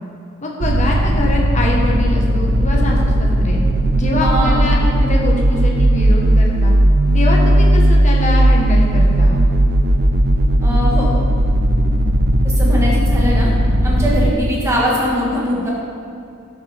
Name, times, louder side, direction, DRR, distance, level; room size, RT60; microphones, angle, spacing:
voice 1, 0.4-3.6 3.9-6.7 7.1-9.4, left 1 dB, 35° left, -1 dB, 1.3 m, -23 dB
sound 1, 0.6-14.3, right 1 dB, 45° right, 0.5 m, -15 dB
voice 2, 4.2-4.7 10.6-11.1 12.4-13.5 13.8-15.7, equal, 15° right, -5 dB, 1.7 m, -21 dB
11.5 x 7.2 x 3.5 m, 2.5 s
head